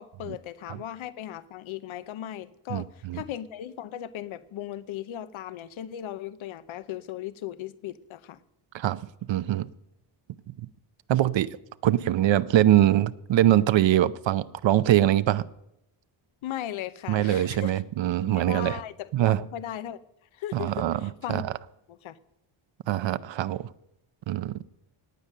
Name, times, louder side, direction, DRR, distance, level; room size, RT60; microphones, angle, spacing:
voice 1, 0.0-8.4 16.4-17.7 18.2-20.0 20.3-21.4 21.9-22.2, left 12 dB, 70° left, 0.8 m, -37 dB
voice 2, 2.7-3.2 8.7-9.0 9.3-9.7 10.6-10.7 11.1-11.6 11.8-15.4 17.1-18.8 19.1-19.4 20.5-21.5 22.9-23.7 24.3-24.6, right 12 dB, 65° right, 0.7 m, -23 dB
18.5 x 9.0 x 6.6 m
wide cardioid pair, 150°, 49 cm